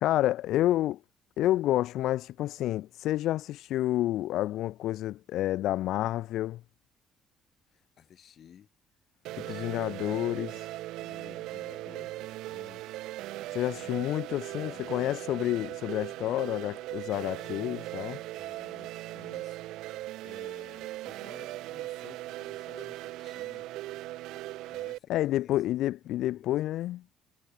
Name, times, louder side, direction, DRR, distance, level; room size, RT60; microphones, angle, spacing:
voice 1, 0.0-1.0 1.4-6.6 9.4-10.5 13.5-18.2 25.1-27.0, left 14 dB, 70° left, 0.5 m, -29 dB
voice 2, 7.7-8.7 9.3-10.6 11.0-12.9 13.2-15.8 18.3-19.6 19.9-23.7 24.4-25.6 26.0-26.5, left 9 dB, 45° left, 2.7 m, -55 dB
sound 1, 9.2-25.0, right 16 dB, 85° right, 0.4 m, -39 dB
cardioid pair, 150°, 0 cm